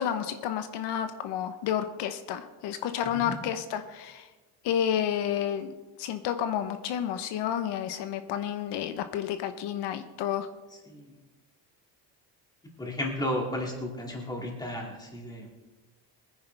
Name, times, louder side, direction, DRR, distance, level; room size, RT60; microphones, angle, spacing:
voice 1, 0.0-4.3 4.6-5.7 6.0-10.5, left 9 dB, 85° left, 9 dB, 1.0 m, -30 dB
voice 2, 12.8-15.5, left 1 dB, 10° left, -1 dB, 2.4 m, -33 dB
21.5 x 10.0 x 3.5 m, 1.2 s
cardioid pair, 170°, 40 cm